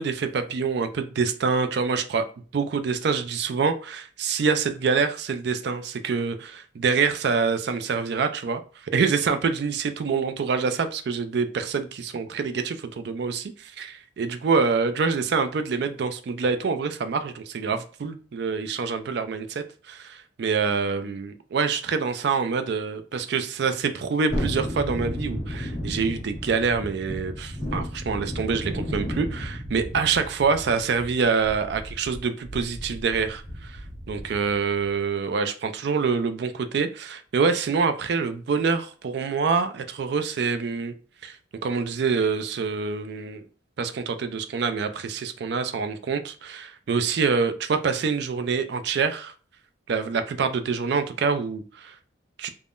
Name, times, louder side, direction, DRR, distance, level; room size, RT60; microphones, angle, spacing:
voice 1, 0.0-2.3 2.5-33.8 34.1-40.9 41.2-41.4 41.6-43.4 43.8-49.3 49.9-52.0 52.4-52.5, right 5 dB, 55° right, 0.3 m, -26 dB
Thunderstorm, 24.3-34.5 34.9-35.0, equal, 40° left, 1.3 m, -33 dB
3.5 x 2.1 x 2.4 m
head